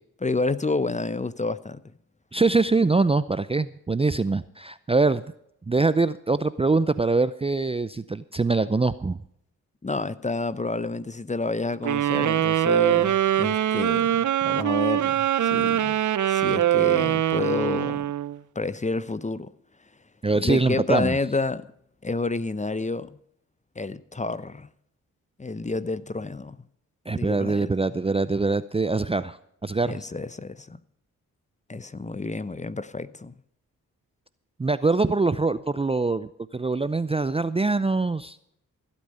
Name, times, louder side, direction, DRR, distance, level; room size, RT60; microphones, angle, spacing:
voice 1, 0.2-1.8 9.8-16.0 16.3-18.1 18.5-19.5 20.4-21.7 22.0-23.2 23.8-24.7 25.4-26.6 27.1-27.7 29.8-30.8 31.7-33.3, left 3 dB, 20° left, 0.8 m, -29 dB
voice 2, 2.3-5.2 5.7-9.2 20.2-21.2 27.1-30.0 34.6-38.4, right 3 dB, 15° right, 0.5 m, -23 dB
sound 1, 11.8-18.4, right 12 dB, 55° right, 0.7 m, -23 dB
15.5 x 8.6 x 5.6 m
supercardioid pair, 40°, 36 cm